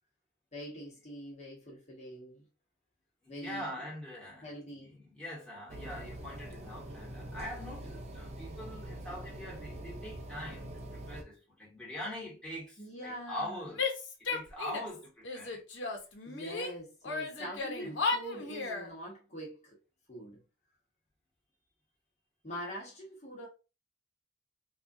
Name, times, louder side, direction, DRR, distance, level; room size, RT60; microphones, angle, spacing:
voice 1, 0.5-2.5 3.3-3.8 4.4-4.9 12.8-13.7 16.2-19.8 20.1-20.4 22.4-23.5, equal, 35° left, 1.1 m, -44 dB
voice 2, 3.2-4.5 4.8-13.8 14.2-15.6 16.4-16.5 17.8-17.9, left 1 dB, 5° left, 1.4 m, -43 dB
sound 1, 5.7-11.2, right 1 dB, 35° right, 0.6 m, -44 dB
Female speech woman speaking / Yell, 13.8-15.0 15.2-16.7 17.0-18.9, left 4 dB, 70° left, 0.9 m, -35 dB
4.1 x 2.4 x 2.7 m
head